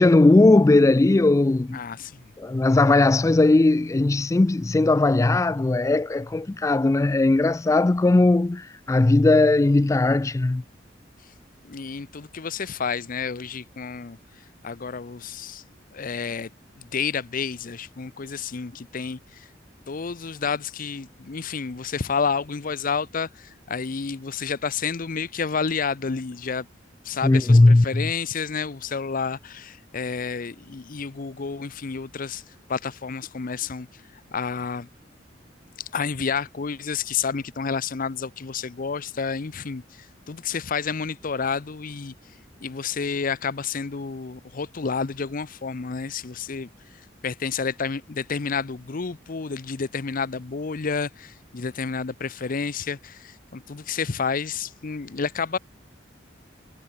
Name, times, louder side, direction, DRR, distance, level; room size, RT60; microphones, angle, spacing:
voice 1, 0.0-1.8 2.4-10.6 27.2-28.1, left 2 dB, 15° left, 0.3 m, -18 dB
voice 2, 1.7-2.3 11.6-14.2 14.6-15.6 15.9-16.5 16.8-19.5 19.9-26.7 27.0-32.4 32.7-33.9 34.3-34.9 35.8-42.1 42.6-46.7 47.2-55.6, left 5 dB, 50° left, 0.6 m, -30 dB
head